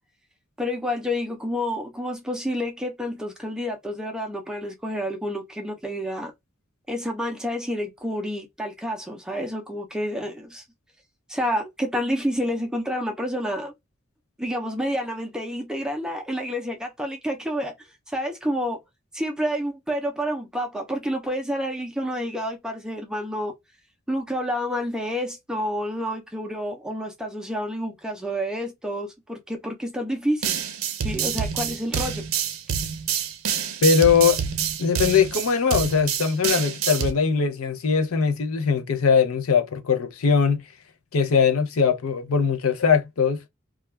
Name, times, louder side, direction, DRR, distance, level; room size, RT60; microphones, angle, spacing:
voice 1, 0.6-6.3 6.9-10.6 11.3-13.7 14.4-17.7 18.1-18.8 19.1-23.5 24.1-30.6 31.0-32.2, equal, 5° right, 0.4 m, -29 dB
sound 1, 30.4-37.1, right 8 dB, 80° right, 0.5 m, -27 dB
voice 2, 33.8-34.4 34.8-40.6 41.1-43.4, left 6 dB, 85° left, 0.5 m, -21 dB
2.3 x 2.2 x 3.0 m
head